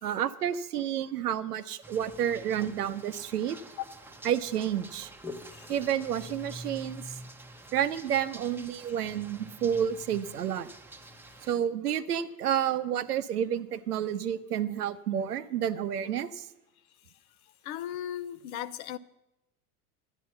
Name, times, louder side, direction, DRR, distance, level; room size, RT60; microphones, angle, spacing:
voice 1, 0.0-3.6 4.2-5.1 5.7-7.2 7.7-10.7 11.5-16.5, right 9 dB, 90° right, 0.8 m, -30 dB
sound 1, 1.8-11.5, equal, 5° right, 0.9 m, -47 dB
voice 2, 17.6-19.0, left 11 dB, 65° left, 0.7 m, -37 dB
10.5 x 10.0 x 5.6 m
hypercardioid pair, 90°, 45 cm